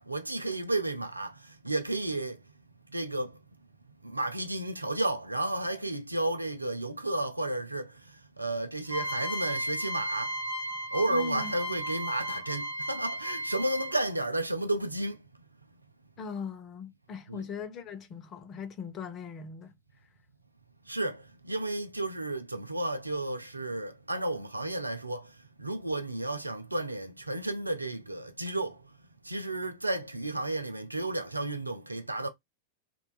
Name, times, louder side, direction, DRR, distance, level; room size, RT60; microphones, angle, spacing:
voice 1, 0.0-2.4 2.9-3.4 4.0-10.4 10.9-15.2 17.3-17.5 20.9-28.9 29.2-32.3, right 1 dB, 85° right, 0.4 m, -32 dB
sound 1, 8.9-14.1, right 1 dB, 85° left, 1.2 m, -35 dB
voice 2, 11.1-11.5 16.2-19.7, left 5 dB, 30° left, 0.6 m, -39 dB
2.9 x 2.2 x 2.3 m
figure-of-eight pair, 90°, 0 cm